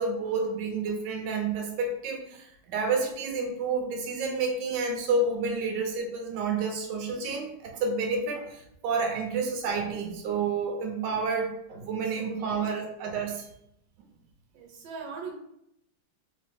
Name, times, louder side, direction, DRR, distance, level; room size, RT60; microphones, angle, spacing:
voice 1, 0.0-13.4, right 4 dB, 70° right, 2 dB, 1.2 m, -30 dB
voice 2, 12.1-12.6 14.5-15.3, right 5 dB, 90° right, 0 dB, 1.4 m, -40 dB
3.5 x 2.1 x 3.3 m, 0.78 s
omnidirectional pair, 2.0 m